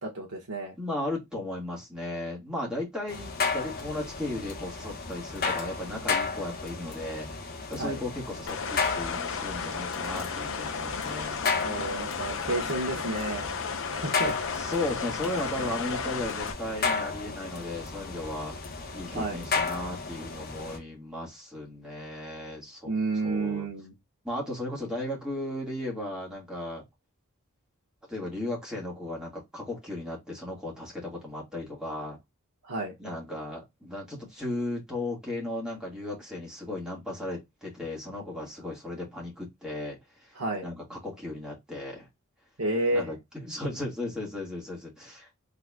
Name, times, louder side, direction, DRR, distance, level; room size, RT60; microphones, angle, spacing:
voice 1, 0.0-0.8 7.8-8.0 11.6-13.5 13.9-14.4 19.1-19.4 22.8-23.9 32.6-32.9 40.3-40.7 42.6-43.1, right 2 dB, 75° right, 1.5 m, -30 dB
voice 2, 0.8-7.3 7.7-11.4 14.5-18.5 18.9-22.9 23.2-23.7 24.2-26.8 28.1-32.2 33.0-40.3 40.6-42.1 42.9-43.2 43.4-45.3, left 1 dB, 5° right, 1.8 m, -35 dB
sound 1, 3.1-20.8, left 4 dB, 45° left, 1.1 m, -34 dB
sound 2, 8.5-16.5, left 6 dB, 65° left, 0.8 m, -34 dB
3.9 x 3.4 x 2.3 m
head